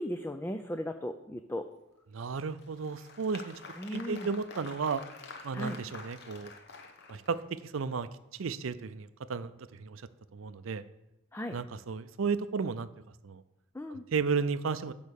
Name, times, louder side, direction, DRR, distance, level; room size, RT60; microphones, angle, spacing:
voice 1, 0.0-1.7 3.8-4.3 5.5-5.8 11.3-11.6 13.7-14.1, equal, 10° left, 7 dB, 0.4 m, -36 dB
voice 2, 2.1-3.6 3.9-5.0 5.4-6.5 7.1-10.0 10.3-10.8 11.5-12.9 13.2-13.4 13.9-14.9, right 5 dB, 75° right, 14 dB, 0.5 m, -34 dB
Applause, 2.3-7.7, left 4 dB, 55° left, 1.0 m, -48 dB
8.9 x 5.4 x 6.4 m, 0.94 s
head